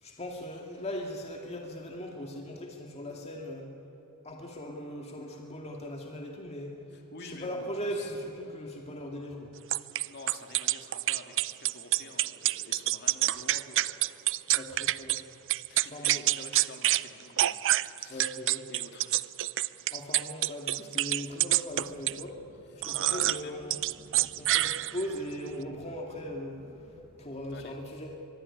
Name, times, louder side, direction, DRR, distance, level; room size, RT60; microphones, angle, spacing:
voice 1, 0.0-3.7 4.2-6.7 7.2-9.5 14.5-15.2 15.9-16.2 18.1-18.6 19.9-22.4 22.8-23.8 24.4-26.6 27.2-28.1, equal, 30° left, 1 dB, 2.2 m, -39 dB
voice 2, 6.9-8.2 8.4-8.7 10.0-13.9 15.7-17.6 17.9-18.4 18.7-19.7 22.7-23.6 27.5-27.7, left 3 dB, 50° left, 3 dB, 2.9 m, -49 dB
sound 1, 9.7-15.2 15.5-17.0 17.4-22.2 22.8-23.4 23.7-25.2, right 15 dB, 60° right, 0.5 m, -27 dB
sound 2, 21.7-27.3, equal, 25° right, 3.2 m, -57 dB
23.5 x 23.0 x 9.9 m, 2.9 s
head